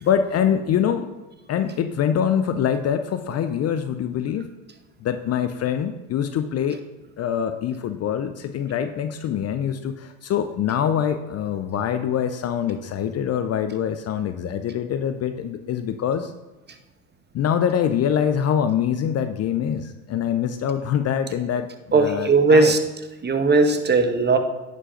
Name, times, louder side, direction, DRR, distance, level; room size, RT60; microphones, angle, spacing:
voice 1, 0.0-1.1 1.5-4.5 5.0-6.8 7.2-16.3 17.3-22.7, left 8 dB, 35° left, 9 dB, 0.6 m, -24 dB
voice 2, 21.9-22.8 23.2-24.4, right 3 dB, 25° right, 7 dB, 1.2 m, -17 dB
9.8 x 5.2 x 5.7 m, 1.1 s
hypercardioid pair, 70°, 44 cm